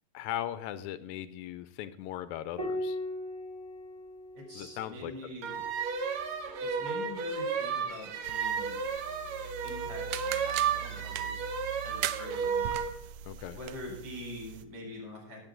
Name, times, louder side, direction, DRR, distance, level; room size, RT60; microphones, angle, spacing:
voice 1, 0.1-3.0 4.5-5.1 13.3-13.6, left 12 dB, 80° left, 13 dB, 1.9 m, -38 dB
Piano, 2.6-7.4 9.1-9.9, left 1 dB, 20° left, 1.1 m, -41 dB
voice 2, 4.3-5.7 6.6-8.8 9.6-11.5 11.8-12.7 13.6-15.4, left 1 dB, 35° right, -1 dB, 5.3 m, -44 dB
sound 1, 5.4-12.9, right 6 dB, 65° right, 2.2 m, -33 dB
sound 2, 8.2-14.6, right 11 dB, 85° right, 1.3 m, -40 dB
18.0 x 8.1 x 3.8 m, 0.82 s
omnidirectional pair, 3.4 m